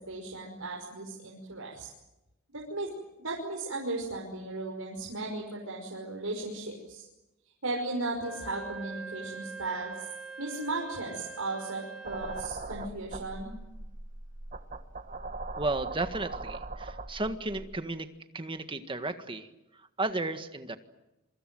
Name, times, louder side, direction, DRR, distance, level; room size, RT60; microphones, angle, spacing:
voice 1, 0.1-1.9 2.5-2.9 3.2-7.0 7.6-9.9 10.4-13.5, right 2 dB, 80° right, -1 dB, 5.7 m, -36 dB
Wind instrument woodwind instrument, 8.1-12.6, right 4 dB, 5° right, 4.2 m, -44 dB
sound 1, 12.0-17.8, right 3 dB, 40° right, 1.5 m, -40 dB
voice 2, 15.6-18.1 18.3-19.5 20.0-20.8, right 2 dB, 25° right, 8 dB, 1.8 m, -33 dB
27.5 x 24.5 x 7.8 m, 0.95 s
head